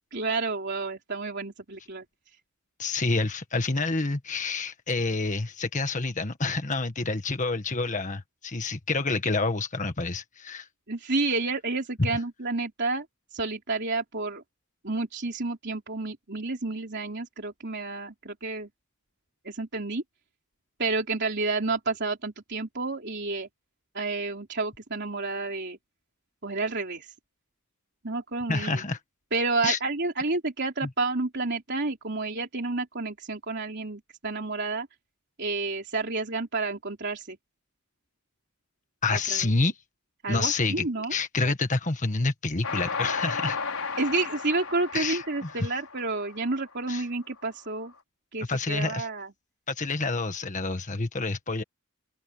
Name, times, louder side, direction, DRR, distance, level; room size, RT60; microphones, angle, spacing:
voice 1, 0.1-2.0 10.9-13.1 13.3-14.4 14.8-18.7 19.4-20.0 20.8-23.5 23.9-25.8 26.4-27.1 28.0-28.8 29.3-34.9 35.4-37.4 39.3-39.4 40.2-41.1 44.0-47.9 48.3-49.3, right 3 dB, 55° right, 3.6 m, -30 dB
voice 2, 2.8-10.7 12.0-12.1 28.5-29.0 29.6-29.8 30.8-30.9 39.0-39.8 40.3-43.6 44.9-45.7 46.9-47.1 48.4-49.1 49.7-51.6, left 3 dB, 35° left, 1.6 m, -28 dB
Train, 42.6-47.0, left 5 dB, 80° left, 5.1 m, -34 dB
open air
head